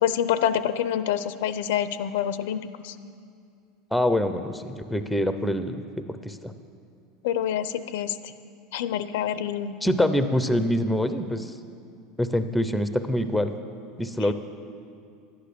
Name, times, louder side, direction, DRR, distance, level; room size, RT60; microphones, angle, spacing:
voice 1, 0.0-3.0 7.2-8.3 8.7-9.7 14.2-14.3, left 10 dB, 80° left, 13 dB, 0.5 m, -27 dB
voice 2, 3.9-6.5 9.8-11.5 12.2-13.5 14.0-14.3, left 1 dB, ahead, 10 dB, 0.5 m, -25 dB
11.5 x 9.7 x 6.7 m, 2.3 s
supercardioid pair, 150°, 0 cm